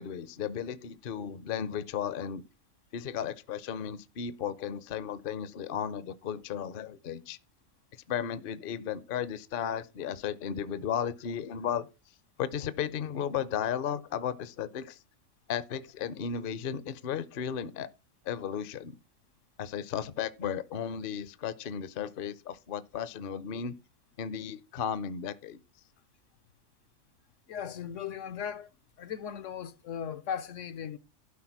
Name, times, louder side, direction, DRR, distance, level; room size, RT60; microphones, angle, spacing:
voice 1, 0.0-2.4 2.9-7.4 8.1-11.9 12.4-15.0 15.5-17.9 18.2-19.0 19.6-23.7 24.2-25.6, left 8 dB, 50° left, 0.8 m, -34 dB
voice 2, 27.5-28.7 29.0-31.0, left 8 dB, 70° left, 1.1 m, -37 dB
12.0 x 4.8 x 5.9 m
omnidirectional pair, 1.4 m